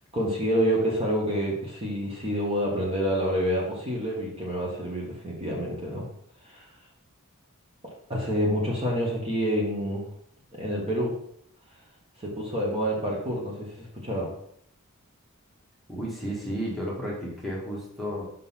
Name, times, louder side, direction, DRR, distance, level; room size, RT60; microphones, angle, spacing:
voice 1, 0.1-6.1 6.5-6.7 8.1-10.1 10.5-11.1 12.2-14.3, equal, 25° right, -3 dB, 1.5 m, -28 dB
voice 2, 15.9-18.2, equal, ahead, -5 dB, 1.6 m, -32 dB
5.4 x 4.1 x 5.6 m, 0.69 s
head